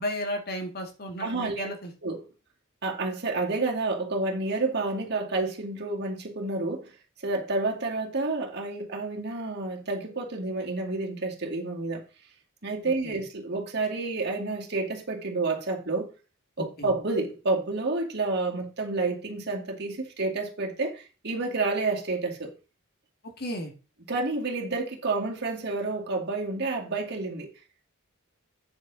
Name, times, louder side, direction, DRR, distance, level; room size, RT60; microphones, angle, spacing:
voice 1, 0.0-1.9 12.8-13.2 16.6-16.9 23.4-23.7, equal, 50° left, 2.1 m, -34 dB
voice 2, 1.2-1.7 2.0-2.2 2.8-6.9 7.2-12.0 12.6-16.1 16.6-22.5 24.1-27.5, right 3 dB, 55° right, 2.2 m, -29 dB
8.8 x 7.1 x 4.0 m
head